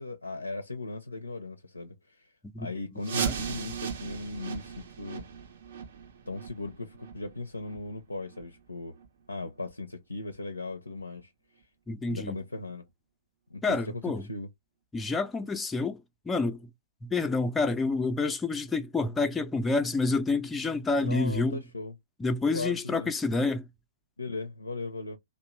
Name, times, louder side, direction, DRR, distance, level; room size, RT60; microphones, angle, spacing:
voice 1, 0.0-2.3 2.6-5.3 6.3-9.0 9.3-11.3 12.0-12.9 13.5-14.5 21.0-22.0 22.5-23.1 24.2-25.2, left 2 dB, 85° left, 0.4 m, -37 dB
sound 1, 3.0-8.6 8.9-9.1 9.6-9.7 10.3-10.4 11.0-11.1, right 7 dB, 55° right, 0.6 m, -37 dB
voice 2, 11.9-12.4 13.6-14.2 14.9-16.0 16.3-16.6 17.0-21.6 22.2-23.6, left 3 dB, 10° left, 0.4 m, -28 dB
2.8 x 2.1 x 3.0 m
figure-of-eight pair, 115°, 0 cm